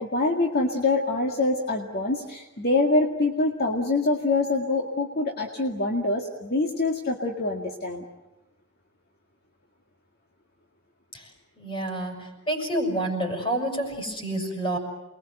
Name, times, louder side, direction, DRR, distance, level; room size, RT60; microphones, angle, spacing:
voice 1, 0.0-8.0, left 2 dB, 50° left, 1 dB, 2.1 m, -25 dB
voice 2, 11.6-14.8, right 1 dB, 25° left, 2 dB, 6.4 m, -28 dB
29.0 x 22.0 x 8.0 m, 1.0 s
head